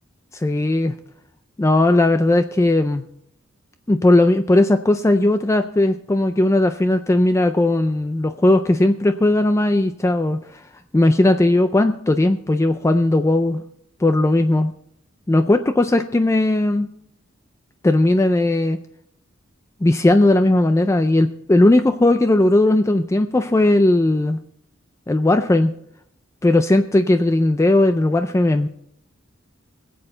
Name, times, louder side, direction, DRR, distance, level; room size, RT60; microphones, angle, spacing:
voice 1, 0.4-0.9 1.6-3.0 3.9-10.6 10.9-13.6 14.0-14.7 15.3-16.9 17.8-18.8 19.8-24.4 25.1-25.7 26.4-28.7, left 1 dB, 15° left, 9 dB, 0.4 m, -17 dB
20.5 x 7.8 x 3.9 m, 0.72 s
head